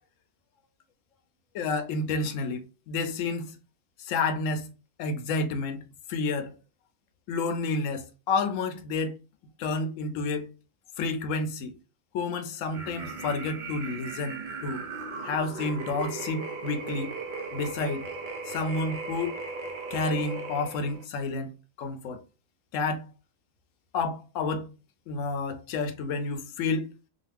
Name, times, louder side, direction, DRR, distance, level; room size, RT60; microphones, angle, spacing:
voice 1, 1.5-3.5 4.0-4.7 5.0-5.8 6.1-6.5 7.3-9.2 9.6-10.5 11.0-11.7 12.1-14.8 15.2-17.1 17.5-18.1 18.5-19.3 19.9-21.5 21.8-22.2 22.7-23.1 23.9-24.7 25.1-26.9, left 3 dB, 70° left, 0.9 m, -30 dB
sound 1, 12.7-21.0, right 4 dB, 70° right, 0.4 m, -37 dB
2.5 x 2.4 x 3.1 m
omnidirectional pair, 1.4 m